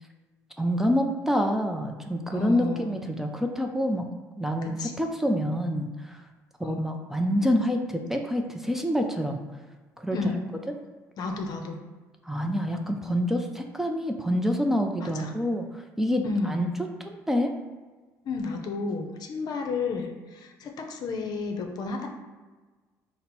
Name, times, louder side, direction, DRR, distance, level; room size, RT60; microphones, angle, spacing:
voice 1, 0.6-6.2 6.6-9.4 10.0-10.2 12.3-16.7 17.0-17.5, equal, 5° right, 3 dB, 0.4 m, -27 dB
voice 2, 2.3-3.0 4.6-5.0 6.6-6.8 10.1-10.4 11.2-11.8 15.0-15.3 16.2-16.6 18.2-22.1, left 4 dB, 60° left, 3 dB, 0.6 m, -32 dB
3.8 x 2.0 x 4.2 m, 1.3 s
supercardioid pair, 65°, 8 cm